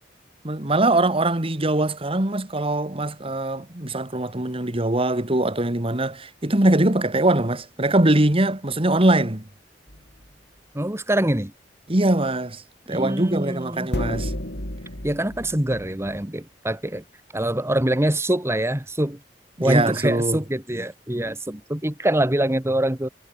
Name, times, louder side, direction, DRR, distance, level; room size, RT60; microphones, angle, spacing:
voice 1, 0.4-9.4 11.9-12.6 12.9-14.3 19.6-20.4, right 1 dB, 35° right, 1.9 m, -22 dB
sound 1, 9.9-10.3 13.9-16.2, left 1 dB, 70° left, 5.9 m, -31 dB
voice 2, 10.7-11.5 12.9-13.9 15.0-17.0 17.3-19.2 19.6-23.1, right 1 dB, 15° right, 1.6 m, -24 dB
head